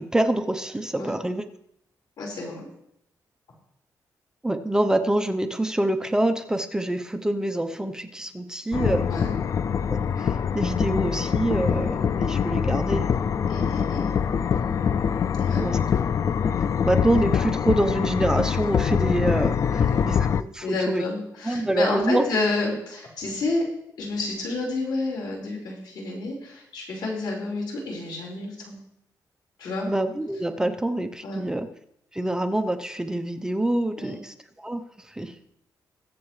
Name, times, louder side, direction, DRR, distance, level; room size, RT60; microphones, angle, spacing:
voice 1, 0.0-1.4 4.4-9.1 9.9-13.1 15.6-15.8 16.8-21.0 21.4-22.3 29.9-31.7 32.1-35.3, right 1 dB, 10° right, 7 dB, 0.7 m, -26 dB
voice 2, 2.2-2.7 9.0-9.4 13.5-14.1 15.4-15.6 19.9-20.0 20.6-23.7 24.0-28.8 29.6-29.9 31.2-31.4 34.0-34.2, left 2 dB, 80° left, -3 dB, 4.6 m, -30 dB
sound 1, 8.7-20.4, left 7 dB, 45° left, 0.3 m, -24 dB
21.5 x 7.8 x 3.2 m, 0.77 s
wide cardioid pair, 130°, 7 cm